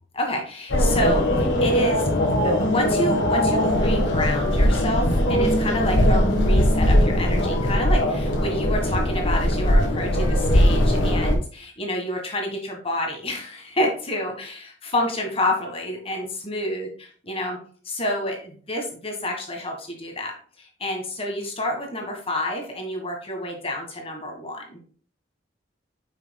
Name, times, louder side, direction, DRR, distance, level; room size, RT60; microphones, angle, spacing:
voice 1, 0.1-2.1 2.4-17.6 17.8-24.8, left 1 dB, 30° left, 2 dB, 1.6 m, -29 dB
sound 1, 0.7-11.3, equal, 85° left, 1.6 m, -20 dB
8.7 x 6.0 x 2.3 m, 0.43 s
head